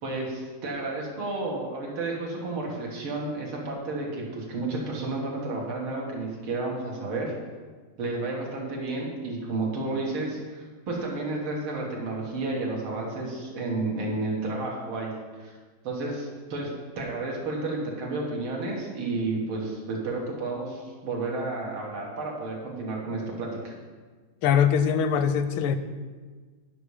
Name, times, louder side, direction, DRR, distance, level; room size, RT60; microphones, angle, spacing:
voice 1, 0.0-7.3 8.0-15.1 15.4-15.6 15.8-23.7, right 2 dB, 85° right, -2 dB, 2.6 m, -31 dB
voice 2, 24.4-25.8, left 8 dB, 80° left, 11 dB, 1.4 m, -22 dB
10.0 x 5.6 x 4.9 m, 1.4 s
omnidirectional pair, 2.3 m